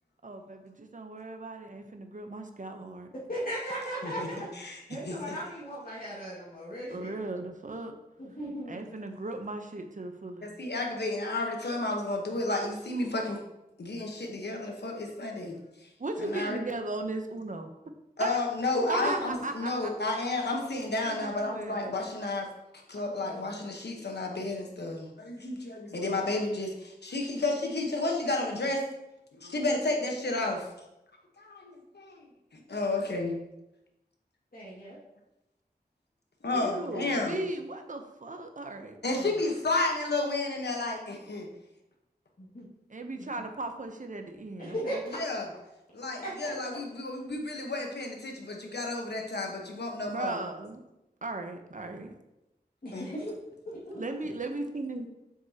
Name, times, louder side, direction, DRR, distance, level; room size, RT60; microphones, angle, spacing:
voice 1, 0.2-3.1 6.9-8.0 8.5-10.5 16.0-17.7 18.2-18.4 18.9-20.1 21.0-22.0 23.0-23.6 36.5-39.3 42.9-45.0 50.1-50.8 51.2-52.1 53.9-55.1, right 2 dB, 50° right, 6 dB, 0.8 m, -37 dB
voice 2, 3.3-4.4 4.9-7.2 8.2-8.8 18.8-19.3 34.5-35.0 42.5-42.7 43.2-43.3 44.6-45.0 46.4-46.5 52.8-53.3 53.7-54.0, equal, 60° left, -9 dB, 2.1 m, -37 dB
voice 3, 4.0-5.4 10.4-13.4 13.8-15.9 16.2-16.6 18.2-22.5 22.9-28.8 29.4-30.7 31.4-32.2 32.5-33.4 36.4-37.4 39.0-41.5 45.1-45.5 45.9-50.4 52.9-53.1, left 2 dB, 80° left, 1 dB, 1.2 m, -32 dB
7.5 x 6.0 x 2.9 m, 0.92 s
wide cardioid pair, 75°, 17 cm